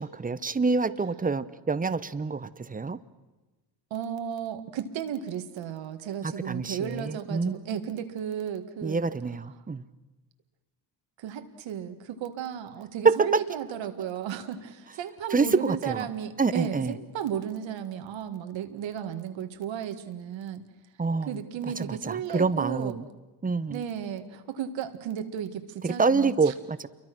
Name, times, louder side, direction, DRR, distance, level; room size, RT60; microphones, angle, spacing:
voice 1, 0.0-3.0 6.2-7.6 8.8-9.8 13.0-13.3 15.3-16.1 16.4-16.9 21.0-21.4 21.8-23.0 23.4-23.8 25.8-26.9, right 4 dB, 20° right, 15 dB, 0.9 m, -26 dB
voice 2, 3.9-9.0 11.2-20.7 21.3-22.9 23.7-26.5, right 9 dB, 85° right, 8 dB, 2.0 m, -34 dB
29.0 x 23.0 x 6.2 m, 1.1 s
cardioid pair, 110°, 44 cm